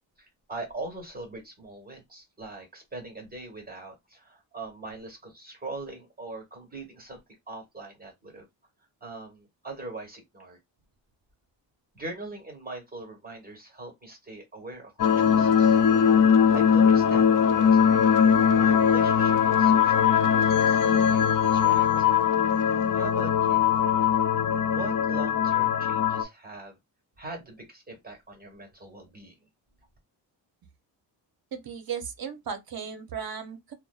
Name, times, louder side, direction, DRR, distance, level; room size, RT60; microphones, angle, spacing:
voice 1, 0.2-7.2 7.5-8.5 9.0-10.6 11.9-15.8 16.5-18.1 18.5-22.1 22.9-23.7 24.7-26.8 27.2-29.3, right 2 dB, 20° right, 1.4 m, -41 dB
sound 1, 15.0-26.2, left 7 dB, 45° left, 0.5 m, -21 dB
voice 2, 31.5-33.7, right 7 dB, 50° right, 0.7 m, -36 dB
2.5 x 2.2 x 2.3 m
cardioid pair, 90°, 46 cm